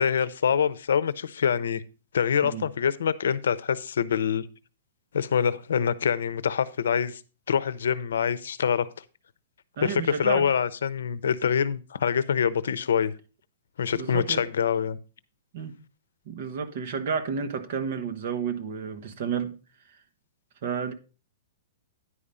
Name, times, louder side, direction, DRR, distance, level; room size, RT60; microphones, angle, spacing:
voice 1, 0.0-1.8 2.1-4.4 5.1-7.2 7.5-8.9 9.8-13.1 13.8-15.0, left 7 dB, 80° left, 0.7 m, -25 dB
voice 2, 9.8-10.5 13.9-14.4 15.5-15.8 16.2-19.6 19.9-20.0 20.6-20.9, right 6 dB, 40° right, 1.1 m, -31 dB
9.9 x 5.0 x 5.5 m
hypercardioid pair, 180°, 0 cm